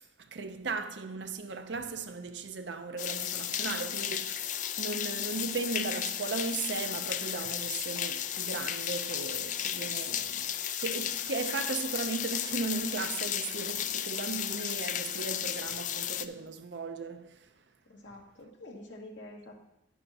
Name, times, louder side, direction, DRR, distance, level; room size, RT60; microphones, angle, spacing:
voice 1, 0.2-10.4 10.8-17.5, right 4 dB, 65° right, 0.6 m, -37 dB
sound 1, 3.0-16.3, left 10 dB, 40° left, 0.3 m, -34 dB
voice 2, 17.9-19.5, left 1 dB, 85° left, 1.9 m, -47 dB
10.5 x 9.3 x 2.8 m
head